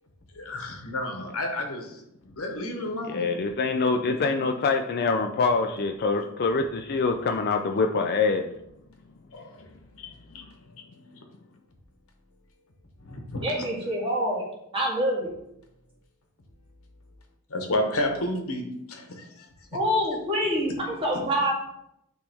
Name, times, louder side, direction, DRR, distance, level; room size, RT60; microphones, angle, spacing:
voice 1, 0.3-3.3 4.0-4.2 9.3-9.7 10.0-10.5 11.0-11.2 13.0-13.6 17.5-19.5, left 1 dB, 65° left, 4 dB, 1.0 m, -32 dB
voice 2, 3.1-8.5, left 4 dB, 45° left, 5 dB, 0.4 m, -25 dB
voice 3, 13.4-14.4 14.7-15.3 19.7-21.5, equal, 25° right, -4 dB, 1.8 m, -26 dB
8.8 x 3.2 x 3.5 m, 0.79 s
head